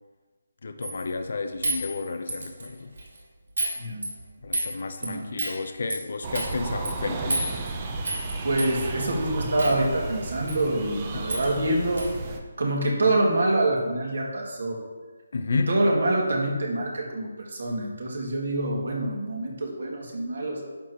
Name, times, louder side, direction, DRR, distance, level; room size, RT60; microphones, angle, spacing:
voice 1, 0.6-2.9 4.4-7.5 11.1-11.3 15.3-15.7, left 4 dB, 45° left, 7 dB, 0.6 m, -31 dB
sound 1, 0.8-1.1 1.6-2.7 3.0-3.2 3.6-3.7 4.0-4.7 5.0-5.1 5.4-5.6 5.9-6.0 6.3-6.5 6.8-6.9 7.3-7.7 8.0-8.3 8.6-8.7 9.6-9.8 10.5-10.6 10.9-11.0 11.3-11.5 12.0-12.1, right 2 dB, 85° right, 3.1 m, -29 dB
sound 2, 6.2-12.4, right 3 dB, 15° right, 0.5 m, -34 dB
voice 2, 8.4-12.1 12.6-14.8 15.5-20.6, right 1 dB, 55° right, -1 dB, 2.0 m, -26 dB
11.0 x 8.3 x 2.9 m, 1.3 s
hypercardioid pair, 180°, 0 cm